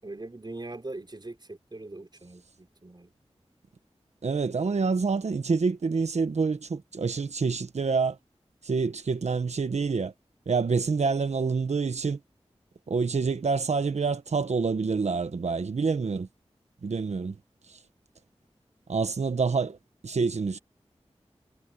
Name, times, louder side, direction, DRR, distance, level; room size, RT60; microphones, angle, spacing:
voice 1, 0.0-3.1, right 2 dB, 40° right, 5.8 m, -41 dB
voice 2, 4.2-8.2 8.6-10.1 10.5-12.2 12.9-16.3 16.8-17.4 18.9-19.8 20.0-20.6, right 4 dB, 85° right, 1.3 m, -27 dB
wide cardioid pair, 50°, 11 cm